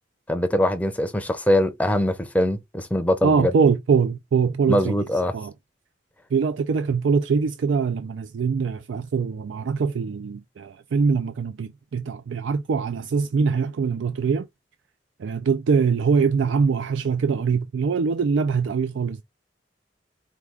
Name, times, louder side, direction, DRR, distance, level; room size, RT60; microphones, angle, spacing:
voice 1, 0.3-3.5 4.7-5.3, left 1 dB, 10° left, 0.6 m, -22 dB
voice 2, 3.2-5.1 5.3-5.5 6.3-14.5 15.2-19.2, right 5 dB, 80° right, 0.4 m, -23 dB
4.6 x 2.3 x 3.4 m
head